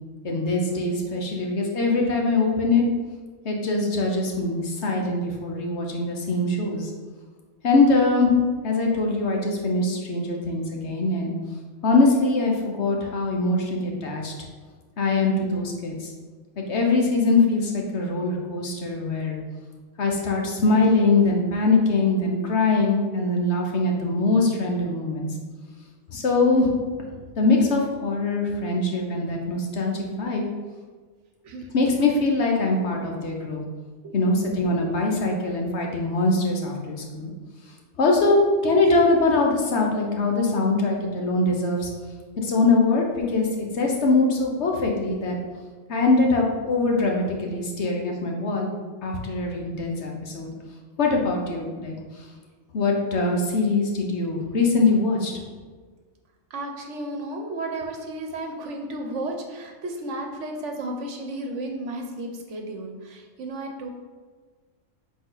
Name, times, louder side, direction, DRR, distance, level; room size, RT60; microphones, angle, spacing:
voice 1, 0.2-2.9 3.4-6.9 7.6-8.4 8.6-11.3 11.8-14.3 15.0-16.1 16.6-19.4 20.0-25.3 26.1-26.7 27.4-30.4 31.7-33.6 34.1-37.3 38.0-41.9 42.4-45.4 45.9-48.7 49.0-50.5 51.0-52.3 52.7-55.3, left 3 dB, 55° left, 0 dB, 1.2 m, -22 dB
voice 2, 56.5-63.9, right 1 dB, 60° right, 3 dB, 1.1 m, -33 dB
7.3 x 4.1 x 4.0 m, 1.4 s
omnidirectional pair, 1.5 m